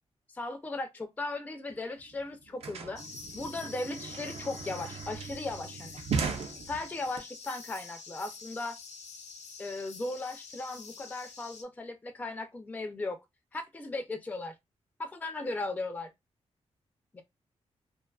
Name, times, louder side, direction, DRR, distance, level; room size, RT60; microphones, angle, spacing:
voice 1, 0.3-0.9 1.2-3.0 3.3-6.0 6.7-8.8 9.6-13.2 13.5-14.5 15.0-16.1 17.1-17.2, left 2 dB, 15° left, 0.3 m, -37 dB
sound 1, 1.7-1.8 2.0-7.2, right 5 dB, 60° right, 0.5 m, -37 dB
sound 2, 3.0-11.6, left 4 dB, 80° left, 0.4 m, -47 dB
2.5 x 2.3 x 2.2 m
wide cardioid pair, 120°, 12 cm